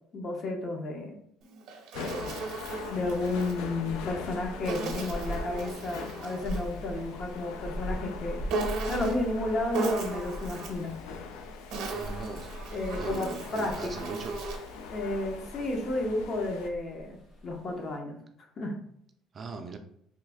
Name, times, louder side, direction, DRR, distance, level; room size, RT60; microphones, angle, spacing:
voice 1, 0.1-1.2 2.0-2.2 2.9-8.4 8.9-10.9 12.7-14.1 14.9-17.2 17.4-18.2 18.6-18.8, left 2 dB, 40° left, 2 dB, 0.7 m, -32 dB
Insect, 1.4-3.6 4.7-6.7 8.5-9.3 9.7-10.9 11.5-14.8, right 3 dB, 70° right, 0.7 m, -36 dB
sound 1, 1.9-16.7, left 5 dB, 90° left, 0.4 m, -43 dB
sound 2, 3.2-18.0, equal, 60° left, 1.3 m, -42 dB
voice 2, 11.9-12.5 13.0-14.3 19.3-19.8, right 4 dB, 35° right, 5 dB, 0.4 m, -39 dB
3.1 x 2.4 x 3.4 m, 0.71 s
cardioid pair, 115°, 0 cm